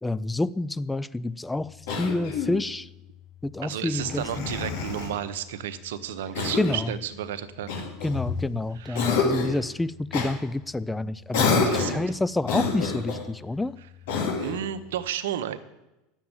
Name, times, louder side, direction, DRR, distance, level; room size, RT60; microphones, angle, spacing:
voice 1, 0.0-2.9 3.4-4.5 6.6-6.9 8.0-13.8, left 2 dB, 10° left, 17 dB, 0.4 m, -28 dB
Cough, 1.9-2.6 4.0-5.1 6.3-6.9 7.7-8.5 8.9-9.6 10.1-10.3 11.3-12.0 12.4-13.2 14.1-14.6, left 4 dB, 70° left, 2.7 m, -27 dB
voice 2, 3.6-7.8 8.8-9.3 11.5-12.0 14.4-15.6, right 10 dB, 80° right, 11 dB, 0.8 m, -33 dB
9.4 x 7.3 x 8.8 m, 0.98 s
hypercardioid pair, 95°, 0 cm